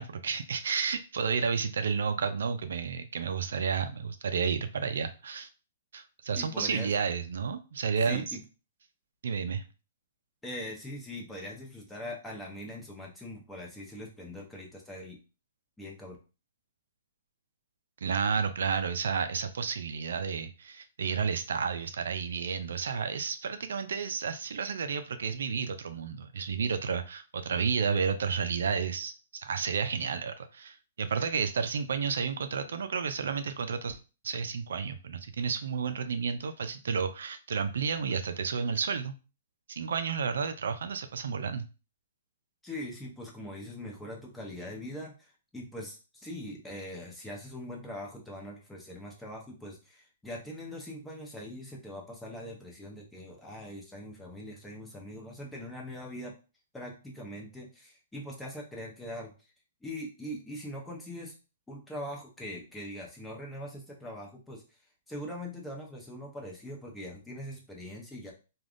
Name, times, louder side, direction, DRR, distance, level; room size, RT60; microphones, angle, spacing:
voice 1, 0.0-5.5 5.9-8.2 9.2-9.6 18.0-34.0 34.2-39.1 39.7-41.7, right 6 dB, 80° right, 9 dB, 0.4 m, -31 dB
voice 2, 6.4-6.9 8.0-8.4 10.4-15.2 15.8-16.2 42.6-56.4 56.7-59.3 59.8-61.3 61.7-64.6 65.1-68.3, left 1 dB, 5° left, -2 dB, 0.7 m, -42 dB
3.3 x 2.3 x 2.5 m, 0.32 s
hypercardioid pair, 150°, 0 cm